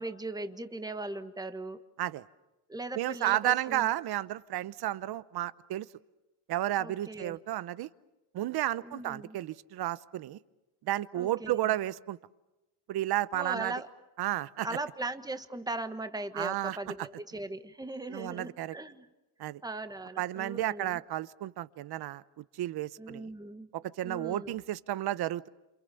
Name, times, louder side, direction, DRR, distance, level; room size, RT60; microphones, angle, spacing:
voice 1, 0.0-1.8 2.7-3.9 6.8-7.4 8.8-9.4 11.1-11.5 13.3-13.9 14.6-19.1 19.6-21.0 23.0-23.7 24.0-24.6, right 2 dB, 10° right, 9 dB, 1.4 m, -39 dB
voice 2, 2.9-5.9 6.5-7.9 8.3-10.4 10.8-12.2 12.9-13.7 14.2-14.7 16.3-16.8 18.1-18.8 19.4-19.6 20.2-23.3 23.7-25.5, right 14 dB, 60° right, 17 dB, 0.9 m, -32 dB
28.0 x 27.5 x 7.0 m, 1.0 s
cardioid pair, 105°, 44 cm